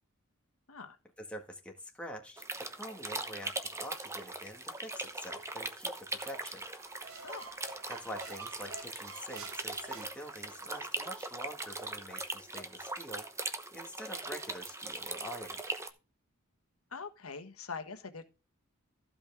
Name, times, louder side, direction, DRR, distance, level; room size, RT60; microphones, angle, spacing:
voice 1, 1.2-6.6 7.9-13.3 13.7-15.6, equal, 5° left, 1.7 m, -46 dB
sound 1, 2.4-15.9, right 2 dB, 15° right, 0.9 m, -40 dB
sound 2, 6.7-10.8, right 4 dB, 75° right, 1.7 m, -49 dB
voice 2, 16.9-18.2, left 4 dB, 80° left, 1.4 m, -43 dB
15.0 x 5.4 x 3.6 m
head